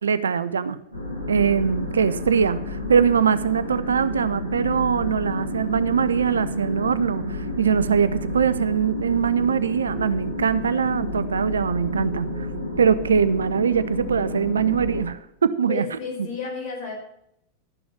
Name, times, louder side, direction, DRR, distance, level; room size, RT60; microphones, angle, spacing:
voice 1, 0.0-0.8 1.3-12.5 12.8-15.8, right 7 dB, 70° right, 14 dB, 0.6 m, -22 dB
sound 1, 0.9-15.0, left 1 dB, 85° left, 3.9 m, -30 dB
voice 2, 15.7-16.9, left 5 dB, 45° left, -1 dB, 4.7 m, -31 dB
12.0 x 6.9 x 6.4 m, 0.79 s
figure-of-eight pair, 90°, 0 cm